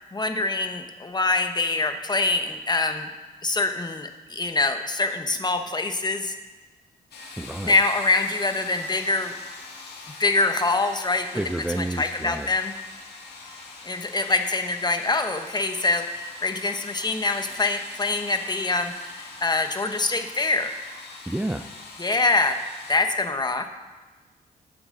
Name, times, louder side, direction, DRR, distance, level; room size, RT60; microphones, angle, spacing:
voice 1, 0.0-3.1 3.4-6.4 7.6-9.3 10.2-11.3 11.8-12.7 13.8-20.7 22.0-22.6 22.9-23.7, left 3 dB, 25° left, 7 dB, 1.1 m, -24 dB
sound 1, 7.1-22.9, left 3 dB, 90° left, 1.8 m, -43 dB
voice 2, 7.4-7.7 11.3-12.5 21.3-21.7, right 1 dB, 5° right, 7 dB, 0.4 m, -29 dB
14.0 x 8.8 x 3.8 m, 1.3 s
cardioid pair, 75°, 16 cm